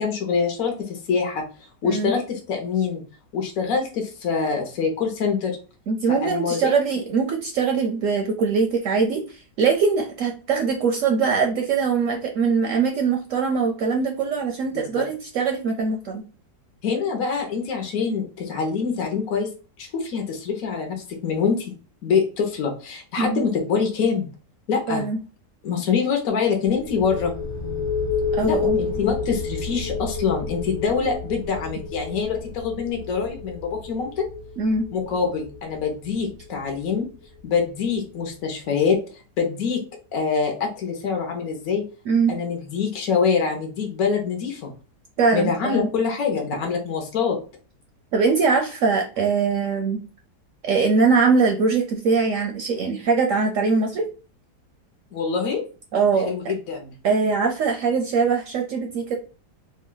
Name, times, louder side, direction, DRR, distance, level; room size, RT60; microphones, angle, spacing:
voice 1, 0.0-1.4 1.8-3.0 3.3-5.6 6.1-6.7 15.0-15.1 16.8-19.5 19.8-21.7 22.0-24.3 24.7-25.1 25.6-27.3 28.4-34.2 34.9-37.0 37.4-39.8 40.1-41.8 42.3-44.7 45.3-47.4 55.1-55.6 56.2-56.9, left 5 dB, 60° left, 2 dB, 1.2 m, -25 dB
voice 2, 1.8-2.1 5.9-16.2 23.2-23.4 24.9-25.2 28.3-28.8 34.6-34.9 42.1-42.3 45.2-45.9 48.1-50.0 50.6-54.1 55.9-56.3 57.0-59.2, right 5 dB, 65° right, 3 dB, 0.8 m, -22 dB
sound 1, 26.7-38.2, left 5 dB, 40° left, 0.4 m, -30 dB
3.3 x 2.2 x 3.7 m, 0.36 s
omnidirectional pair, 1.7 m